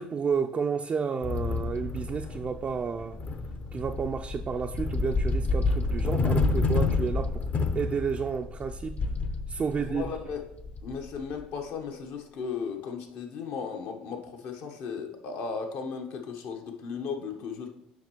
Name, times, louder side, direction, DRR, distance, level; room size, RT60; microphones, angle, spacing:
voice 1, 0.0-3.2 3.7-7.5 7.8-9.0 9.5-10.1, right 6 dB, 30° right, 0.4 m, -31 dB
sound 1, 1.2-11.4, left 3 dB, 40° left, 0.7 m, -29 dB
voice 2, 9.9-10.4 10.8-17.7, left 5 dB, 60° left, 1.0 m, -36 dB
7.6 x 5.2 x 3.0 m
hypercardioid pair, 65°, 4 cm